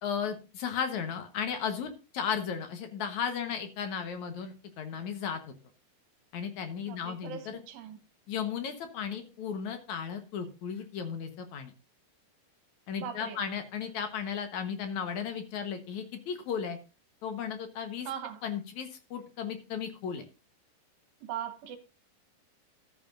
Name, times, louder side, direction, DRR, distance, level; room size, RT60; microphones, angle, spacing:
voice 1, 0.0-5.5 6.3-7.6 8.3-11.7 12.9-16.8 17.2-18.1 18.4-20.2, left 7 dB, 65° left, 1.9 m, -35 dB
voice 2, 6.8-8.0 13.0-13.4 18.0-18.4 21.2-21.8, right 9 dB, 80° right, 3.3 m, -40 dB
14.0 x 11.0 x 2.6 m
omnidirectional pair, 5.1 m